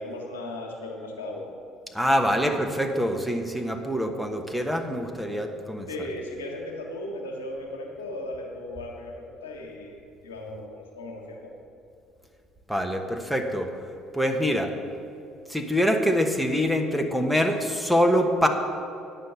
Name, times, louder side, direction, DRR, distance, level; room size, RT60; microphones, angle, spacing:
voice 1, 0.0-1.5 5.9-10.0 10.2-11.5, left 1 dB, 75° left, -1 dB, 1.5 m, -36 dB
voice 2, 1.9-5.9 12.7-13.7 14.1-14.7 15.5-18.5, equal, ahead, 3 dB, 1.1 m, -24 dB
9.6 x 6.7 x 8.3 m, 2.6 s
figure-of-eight pair, 55°, 0 cm